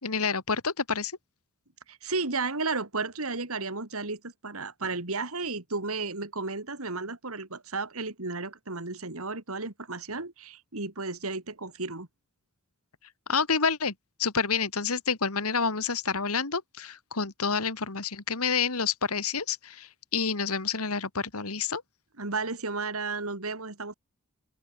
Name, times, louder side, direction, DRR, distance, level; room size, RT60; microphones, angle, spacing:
voice 1, 0.0-1.1 13.3-13.9 14.2-21.8, left 5 dB, 80° left, 2.4 m, -28 dB
voice 2, 1.9-12.1 22.2-23.9, right 3 dB, 70° right, 3.0 m, -33 dB
open air
head